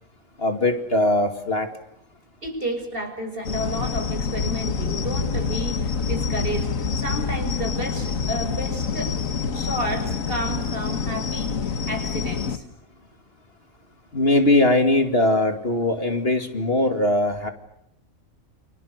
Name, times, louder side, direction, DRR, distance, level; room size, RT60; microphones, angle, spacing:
voice 1, 0.4-1.7 14.1-17.5, left 1 dB, 45° left, 6 dB, 2.7 m, -20 dB
voice 2, 2.4-9.2 9.5-12.6, equal, 40° right, 5 dB, 6.4 m, -31 dB
sound 1, 3.4-12.6, left 5 dB, 70° left, 1.9 m, -27 dB
30.0 x 27.0 x 6.7 m, 0.78 s
omnidirectional pair, 1.4 m